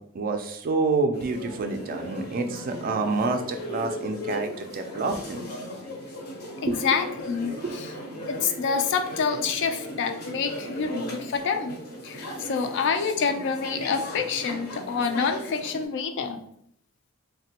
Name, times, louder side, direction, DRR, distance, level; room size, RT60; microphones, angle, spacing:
voice 1, 0.2-5.4 6.7-6.8 7.6-7.7, right 3 dB, 40° right, 5 dB, 0.3 m, -28 dB
sound 1, 1.1-15.9, equal, 80° left, 0.8 m, -37 dB
voice 2, 6.6-7.9 8.3-11.7 12.0-16.4, left 5 dB, 55° left, 7 dB, 0.3 m, -27 dB
3.3 x 2.1 x 2.7 m, 0.71 s
head